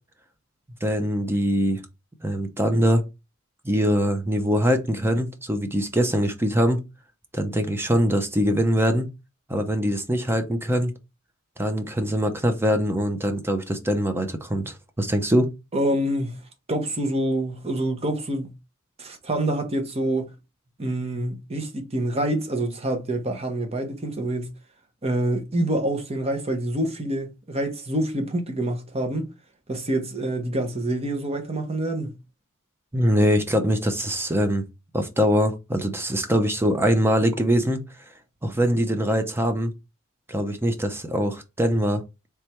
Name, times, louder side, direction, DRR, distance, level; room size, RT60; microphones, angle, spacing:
voice 1, 0.8-1.8 2.2-3.0 3.6-6.8 7.3-9.1 9.5-10.9 11.6-15.5 32.9-34.7 34.9-37.8 38.4-39.7 40.3-42.0, equal, 10° right, 0.6 m, -23 dB
voice 2, 15.7-16.4 16.7-18.5 19.0-20.3 20.8-24.5 25.0-29.3 29.7-32.2, right 1 dB, 30° right, 0.9 m, -26 dB
3.5 x 3.3 x 4.3 m
head